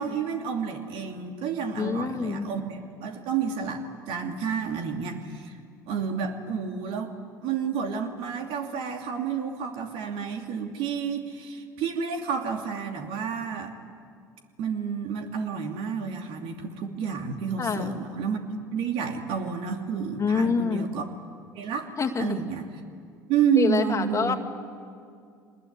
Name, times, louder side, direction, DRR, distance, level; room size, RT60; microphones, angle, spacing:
voice 1, 0.0-5.6 5.9-7.1 7.4-13.7 14.6-21.1 21.5-21.9 22.2-22.7 23.3-24.4, right 6 dB, 60° right, 4 dB, 2.7 m, -30 dB
voice 2, 1.8-2.5 17.6-17.9 20.2-20.9 22.0-22.4 23.6-24.4, left 5 dB, 30° left, 4 dB, 2.0 m, -26 dB
25.0 x 20.5 x 9.8 m, 2.3 s
hypercardioid pair, 60°, 10 cm